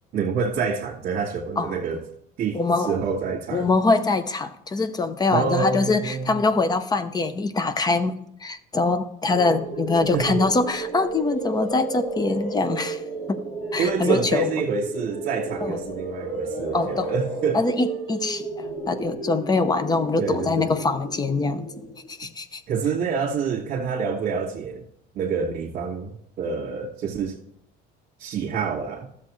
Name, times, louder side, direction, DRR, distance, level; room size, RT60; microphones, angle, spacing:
voice 1, 0.1-2.0 2.4-3.7 5.3-6.4 10.1-10.4 13.8-17.6 20.2-20.8 22.7-24.8 25.1-27.4 28.2-29.1, right 5 dB, 55° right, 1.7 m, -27 dB
voice 2, 2.5-3.0 3.5-8.1 8.4-13.0 13.3-13.4 13.7-14.6 15.6-15.8 16.7-17.1 17.5-22.6, left 3 dB, 20° left, 0.6 m, -24 dB
sound 1, 9.3-22.1, right 2 dB, 35° left, 2.0 m, -32 dB
13.0 x 7.4 x 3.1 m
cardioid pair, 130°, 20 cm